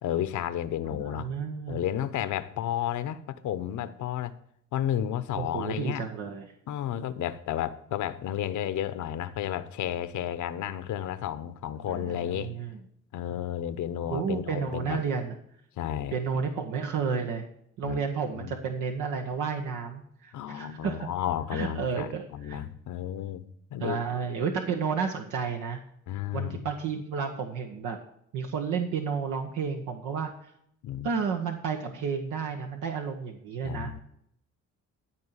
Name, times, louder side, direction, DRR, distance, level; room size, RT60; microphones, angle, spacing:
voice 1, 0.0-1.3 1.7-4.3 4.7-6.0 6.7-12.5 13.1-15.0 15.8-16.1 17.8-18.0 18.3-18.5 20.3-23.5 23.7-24.0 24.3-24.5 26.1-26.6 30.8-31.1 33.6-34.0, left 11 dB, 75° left, 0.9 m, -32 dB
voice 2, 1.0-1.8 5.4-6.5 11.9-12.8 14.1-15.3 16.1-17.4 17.8-21.1 21.5-22.6 23.8-25.8 26.3-28.0 28.3-30.3 31.0-33.9, right 6 dB, 90° right, 1.2 m, -31 dB
13.0 x 4.5 x 8.2 m
cardioid pair, 90°, 30 cm